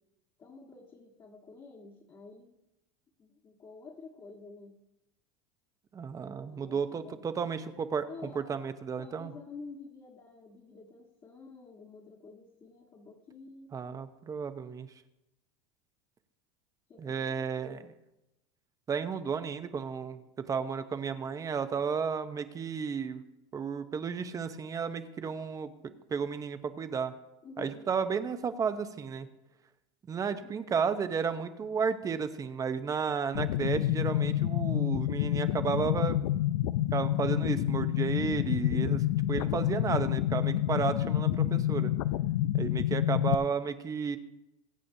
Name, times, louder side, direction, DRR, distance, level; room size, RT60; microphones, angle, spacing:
voice 1, 0.4-2.6 3.2-4.7 6.5-7.2 8.1-8.6 9.0-13.7 16.9-17.9 27.4-27.9 30.3-30.7, left 4 dB, 25° left, -4 dB, 1.6 m, -50 dB
voice 2, 5.9-8.1 8.3-9.3 13.7-14.9 17.0-17.9 18.9-23.2 23.5-25.7 26.1-27.1 27.6-29.3 30.1-36.2 36.9-41.9 42.5-44.2, right 6 dB, 20° right, 10 dB, 0.8 m, -33 dB
sound 1, 33.3-43.3, left 13 dB, 85° left, 0.5 m, -28 dB
22.0 x 8.4 x 2.7 m, 0.91 s
supercardioid pair, 140°, 17 cm